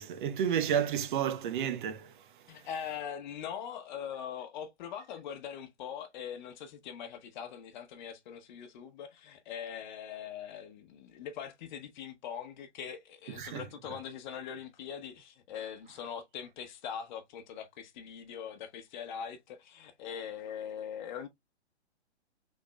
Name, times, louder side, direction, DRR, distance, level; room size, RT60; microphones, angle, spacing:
voice 1, 0.0-2.6 13.4-13.7, right 8 dB, 45° right, 0.7 m, -32 dB
voice 2, 2.5-21.3, left 8 dB, 40° left, 1.0 m, -42 dB
5.9 x 3.6 x 2.2 m
hypercardioid pair, 130°, 34 cm